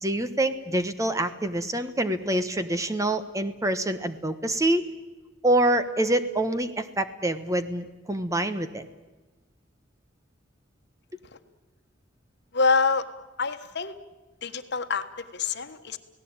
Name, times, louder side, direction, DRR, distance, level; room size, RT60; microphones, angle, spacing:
voice 1, 0.0-4.8 5.4-8.8, right 1 dB, 15° right, 10 dB, 1.2 m, -26 dB
voice 2, 12.5-13.1 13.4-13.9 14.4-16.0, left 4 dB, 60° left, 9 dB, 1.4 m, -26 dB
30.0 x 18.0 x 8.9 m, 1.2 s
head